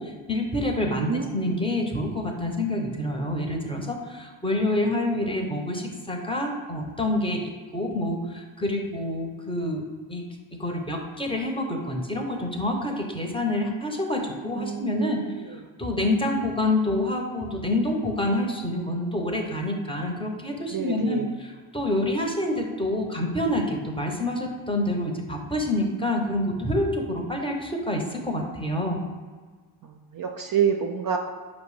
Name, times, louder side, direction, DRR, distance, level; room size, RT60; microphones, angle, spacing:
voice 1, 0.0-9.8 10.1-10.3 10.6-15.2 15.8-21.2 21.7-29.0, left 1 dB, 10° left, 1 dB, 0.7 m, -27 dB
voice 2, 0.9-1.6 14.6-15.6 20.7-21.3 29.8-31.2, right 7 dB, 45° right, 3 dB, 0.5 m, -28 dB
5.0 x 2.1 x 4.7 m, 1.5 s
supercardioid pair, 40°, 50 cm